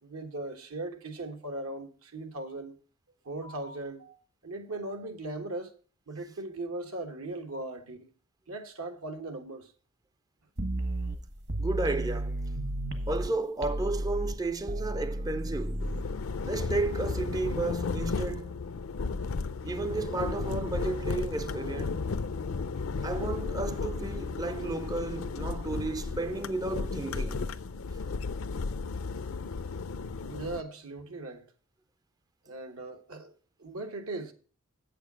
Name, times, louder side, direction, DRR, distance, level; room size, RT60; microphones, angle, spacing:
voice 1, 0.0-2.7 3.2-5.7 6.1-8.1 8.5-9.7 30.2-31.5 32.4-33.3 33.6-34.3, right 2 dB, 80° right, 1.3 m, -38 dB
sound 1, 10.6-13.3 13.6-16.0, right 1 dB, 55° right, 1.3 m, -33 dB
voice 2, 11.6-12.4 13.1-15.9 16.4-18.6 19.6-22.1 23.0-27.5, right 3 dB, 15° right, 0.4 m, -33 dB
sound 2, 15.8-30.6, left 4 dB, 70° left, 0.5 m, -34 dB
8.4 x 6.8 x 6.1 m
head